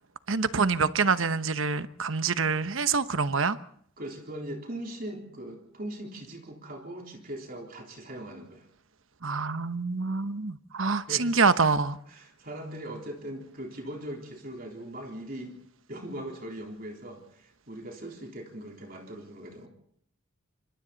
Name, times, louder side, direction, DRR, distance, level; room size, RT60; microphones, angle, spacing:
voice 1, 0.3-3.6 9.2-12.0, right 4 dB, 65° right, 1.0 m, -26 dB
voice 2, 4.0-8.7 10.7-11.5 12.1-15.6 15.9-19.7, right 1 dB, 40° right, 3.7 m, -40 dB
27.5 x 25.0 x 4.1 m
head